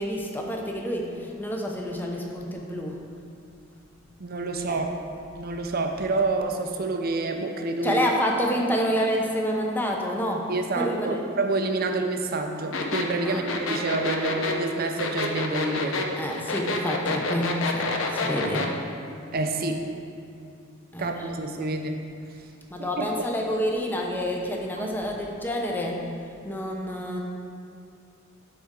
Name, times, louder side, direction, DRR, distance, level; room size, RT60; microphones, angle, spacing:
voice 1, 0.0-3.0 4.7-4.9 7.8-11.2 13.2-13.5 16.2-18.7 20.9-21.3 22.7-26.0 26.4-27.2, equal, 10° left, 0 dB, 0.7 m, -28 dB
voice 2, 4.2-4.9 5.3-8.0 10.5-16.1 19.3-19.8 21.0-22.0 22.8-23.1 24.8-24.9, right 3 dB, 50° right, 5 dB, 0.6 m, -28 dB
sound 1, 12.7-18.7, left 3 dB, 70° left, 0.7 m, -28 dB
12.0 x 4.2 x 3.7 m, 2.6 s
head